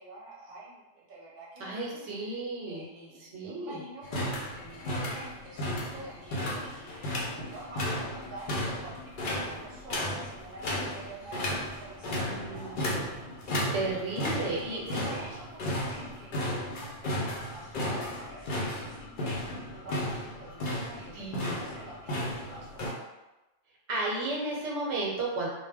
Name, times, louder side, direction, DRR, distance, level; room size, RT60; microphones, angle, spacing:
voice 1, 0.0-12.8 14.1-23.0, right 2 dB, 45° right, -5 dB, 0.8 m, -47 dB
voice 2, 1.6-2.8 3.3-3.8 12.2-13.0 13.7-15.0 21.1-21.6 23.9-25.5, right 2 dB, 80° right, -3 dB, 0.9 m, -33 dB
sound 1, 4.0-22.9, left 1 dB, 55° left, 0.6 m, -34 dB
2.1 x 2.1 x 3.3 m, 1.0 s
omnidirectional pair, 1.2 m